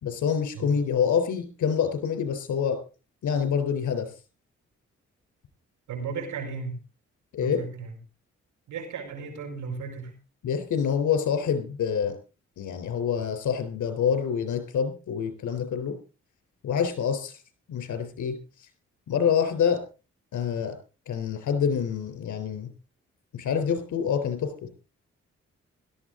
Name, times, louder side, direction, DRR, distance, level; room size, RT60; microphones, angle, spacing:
voice 1, 0.0-2.8 3.2-4.1 7.3-7.6 10.4-12.2 12.6-15.9 16.6-17.4 17.7-18.7 19.1-19.8 20.3-20.8 21.1-22.7 23.3-24.5, left 7 dB, 80° left, 8 dB, 3.7 m, -26 dB
voice 2, 5.9-6.8 7.4-7.9 8.7-10.1, right 5 dB, 90° right, 5 dB, 4.9 m, -35 dB
17.0 x 13.0 x 3.8 m, 0.33 s
cardioid pair, 60°, 29 cm